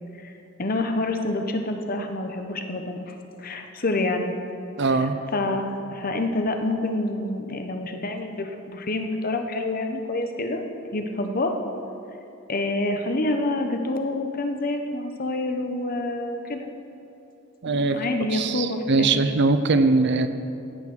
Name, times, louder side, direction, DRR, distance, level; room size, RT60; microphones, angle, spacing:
voice 1, 0.6-4.3 4.9-10.6 10.9-11.6 12.5-16.7 17.7-19.1, left 2 dB, 45° left, 5 dB, 0.9 m, -27 dB
voice 2, 4.8-5.2 17.6-18.0 18.3-20.3, right 3 dB, 55° right, 10 dB, 0.6 m, -21 dB
16.0 x 6.0 x 6.1 m, 2.7 s
head